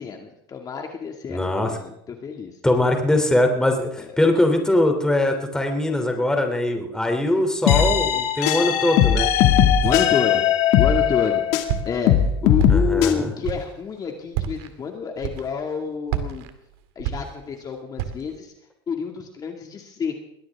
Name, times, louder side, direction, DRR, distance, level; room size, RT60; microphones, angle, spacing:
voice 1, 0.0-2.6 4.0-4.1 9.8-10.4 10.8-11.4 11.8-16.5 17.0-18.5 18.9-20.2, left 6 dB, 30° left, 2 dB, 2.4 m, -29 dB
voice 2, 1.3-1.8 2.6-9.3 12.7-13.3, left 1 dB, 5° left, 4 dB, 3.2 m, -21 dB
sound 1, 7.7-11.7 12.1-13.1, left 9 dB, 60° left, 2.3 m, -18 dB
Walk footsteps, 9.8-10.3 10.8-11.3 11.7-12.2 12.6-13.1 13.4-13.8 14.3-14.7 15.2-15.7 16.1-17.6 18.0-18.4, right 10 dB, 70° right, 2.1 m, -30 dB
22.5 x 17.0 x 3.7 m, 0.79 s
supercardioid pair, 115°, 13 cm